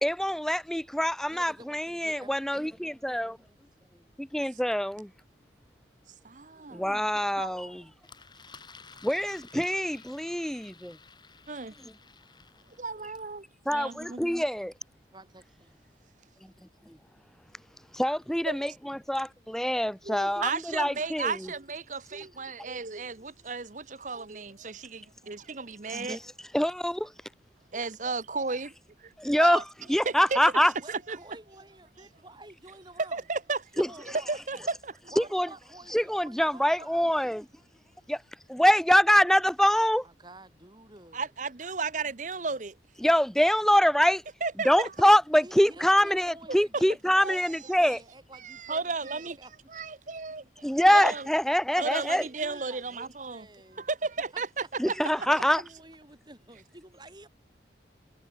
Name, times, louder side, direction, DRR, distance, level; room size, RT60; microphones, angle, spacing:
voice 1, 0.0-3.4 4.2-5.1 6.7-7.8 9.0-11.0 13.7-14.7 16.9-17.0 17.9-21.5 25.9-26.2 26.5-27.1 29.2-29.6 29.9-30.7 33.8-33.9 35.2-35.5 35.9-37.4 38.1-38.2 38.5-40.0 43.0-44.2 44.6-48.0 50.6-52.2 54.8-55.6, equal, ahead, 0.9 m, -25 dB
voice 2, 1.3-3.0 15.1-15.8 30.4-33.2 33.8-34.7 35.1-37.3 40.0-41.3 45.4-49.5 51.8-53.9 54.3-54.7 55.2-57.3, right 2 dB, 25° right, 6.1 m, -50 dB
voice 3, 6.2-6.8 7.3-7.7 11.5-11.7 12.8-13.4 13.7-14.2 18.5-18.6 20.0-26.2 27.7-28.7 29.0-29.6 30.0-30.4 30.9-31.2 33.1-33.8 34.3-34.9 41.1-42.7 44.4-44.9 46.5-46.8 47.2-47.4 48.4-49.4 49.7-51.3 51.8-53.5 53.7-55.3, right 4 dB, 45° right, 0.9 m, -34 dB
Engine, 8.0-13.3, left 5 dB, 25° left, 3.2 m, -53 dB
head